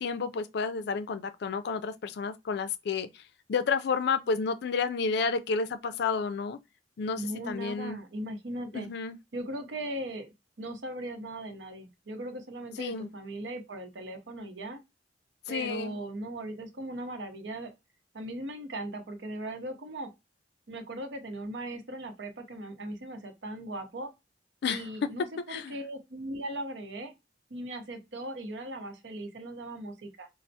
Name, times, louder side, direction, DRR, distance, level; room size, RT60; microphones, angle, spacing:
voice 1, 0.0-3.1 3.5-6.6 7.0-8.0 8.7-9.2 12.8-13.1 15.5-15.9 24.6-25.1 25.5-25.8, left 5 dB, 65° left, 0.4 m, -31 dB
voice 2, 7.1-8.9 9.3-14.8 15.5-17.7 18.1-20.1 20.7-24.1 24.6-27.1 27.5-30.3, right 1 dB, 80° right, 0.7 m, -38 dB
4.3 x 2.0 x 2.6 m
head